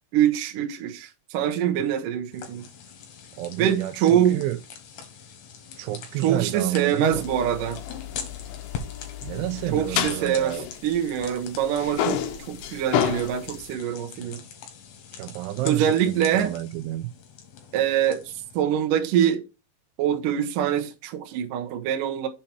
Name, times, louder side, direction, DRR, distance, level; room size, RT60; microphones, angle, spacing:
voice 1, 0.1-2.6 3.6-4.4 6.2-7.8 9.7-10.6 10.8-12.2 12.5-14.4 15.7-16.5 17.7-19.4 20.0-22.3, right 10 dB, 65° right, 2.2 m, -24 dB
sound 1, 2.3-18.6, left 7 dB, 65° left, 3.6 m, -43 dB
voice 2, 3.4-4.6 5.8-7.2 9.2-10.7 15.1-17.1, right 14 dB, 85° right, 3.0 m, -30 dB
sound 2, 7.1-11.4 11.6-13.7, left 10 dB, 80° left, 3.3 m, -31 dB
7.7 x 5.7 x 4.4 m
omnidirectional pair, 5.5 m